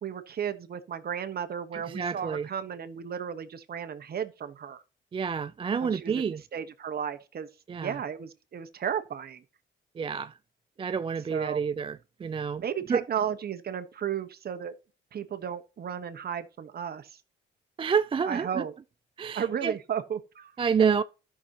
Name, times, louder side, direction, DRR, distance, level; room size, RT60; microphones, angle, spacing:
voice 1, 0.0-4.8 5.8-9.4 11.3-11.6 12.6-14.7 15.1-17.2 18.2-18.7 19.3-20.5, right 8 dB, 50° right, 1.3 m, -34 dB
voice 2, 1.9-2.5 5.1-6.4 7.7-7.9 10.0-10.3 10.8-12.0 12.2-12.6 12.9-13.0 17.8-18.6 19.2-19.7 20.6-21.0, right 6 dB, 25° right, 0.4 m, -28 dB
13.0 x 6.2 x 2.9 m
cardioid pair, 90°, 20 cm